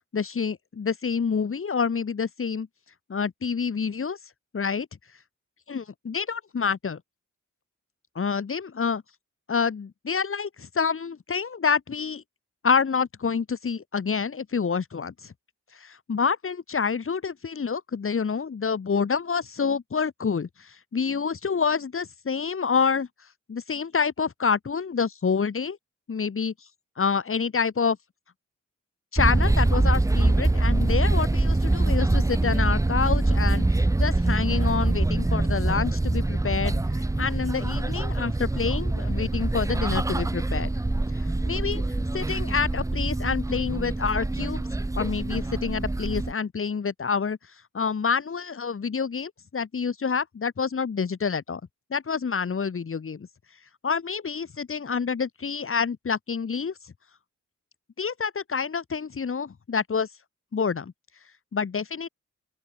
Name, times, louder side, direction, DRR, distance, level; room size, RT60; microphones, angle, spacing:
voice 1, 0.1-2.7 3.1-4.2 4.5-4.9 5.7-7.0 8.1-9.0 9.5-12.2 12.6-15.3 15.8-23.1 23.5-25.8 26.1-26.5 27.0-28.0 29.1-36.8 37.2-40.7 41.5-41.8 42.1-44.6 45.0-47.4 47.7-51.6 51.9-53.3 53.8-56.7 58.0-60.1 60.5-60.9 61.5-62.1, left 5 dB, 45° left, 1.1 m, -27 dB
sound 1, 29.2-46.3, right 2 dB, 10° right, 0.6 m, -24 dB
open air
cardioid pair, 60°, 31 cm